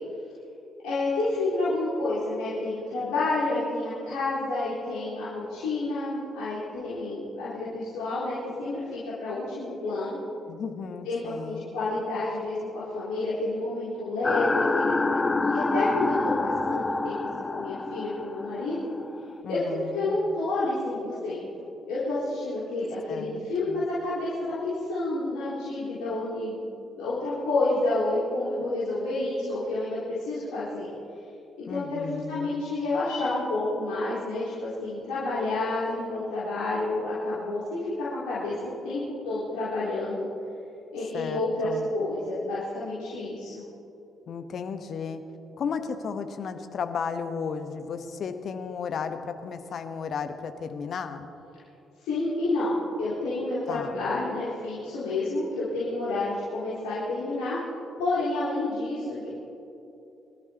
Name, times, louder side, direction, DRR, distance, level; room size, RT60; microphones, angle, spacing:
voice 1, 0.8-10.2 11.0-15.2 15.5-18.8 19.5-30.9 31.7-40.3 40.9-43.6 52.0-57.6 58.0-59.3, left 2 dB, 70° left, -12 dB, 4.1 m, -29 dB
voice 2, 10.5-11.7 19.4-20.2 23.1-23.4 23.7-23.8 31.7-32.6 41.1-41.9 44.3-45.2 45.6-51.3 53.7-54.0, left 6 dB, 55° left, 8 dB, 1.0 m, -34 dB
sound 1, 14.2-19.4, left 3 dB, 25° left, 0.6 m, -27 dB
24.0 x 13.5 x 2.9 m, 2.8 s
figure-of-eight pair, 45°, 0 cm